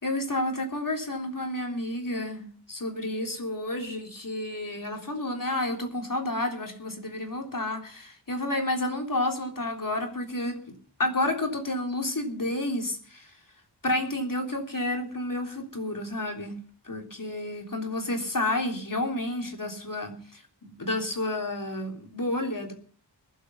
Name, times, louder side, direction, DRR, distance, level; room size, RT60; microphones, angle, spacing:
voice 1, 0.0-13.3 13.8-16.6 16.9-22.7, left 1 dB, 50° left, 2 dB, 3.5 m, -30 dB
21.0 x 8.2 x 5.6 m, 0.43 s
wide cardioid pair, 50°, 41 cm